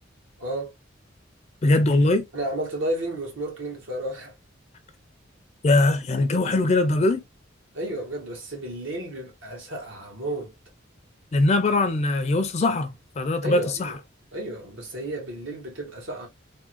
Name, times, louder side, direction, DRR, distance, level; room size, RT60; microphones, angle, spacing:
voice 1, 0.4-0.7 2.3-4.3 7.7-10.5 13.4-14.0 14.3-16.3, right 1 dB, 75° right, 1.4 m, -32 dB
voice 2, 1.6-2.3 5.6-7.2 11.3-14.0, left 2 dB, 35° left, 0.4 m, -21 dB
3.5 x 2.2 x 2.8 m
head